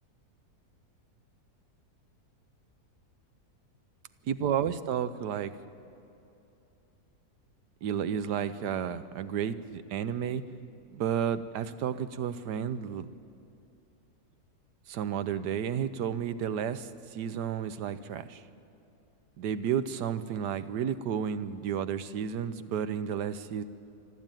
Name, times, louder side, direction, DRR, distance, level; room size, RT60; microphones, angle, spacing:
voice 1, 4.3-5.5 7.8-10.4 10.9-13.1 14.9-18.4 19.4-23.6, right 8 dB, 90° right, 13 dB, 1.4 m, -32 dB
26.0 x 12.5 x 9.1 m, 2.9 s
omnidirectional pair, 1.7 m